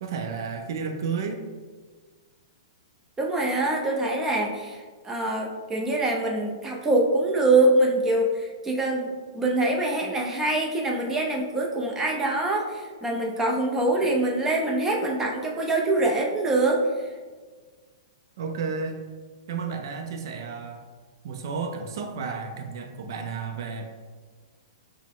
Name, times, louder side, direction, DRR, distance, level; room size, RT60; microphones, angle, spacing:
voice 1, 0.0-1.4 18.4-19.0 19.5-20.9 21.2-23.9, right 5 dB, 65° right, 5 dB, 0.5 m, -32 dB
voice 2, 3.2-16.9, right 2 dB, 15° right, 0 dB, 0.7 m, -24 dB
4.9 x 2.1 x 3.6 m, 1.5 s
hypercardioid pair, 125°, 2 cm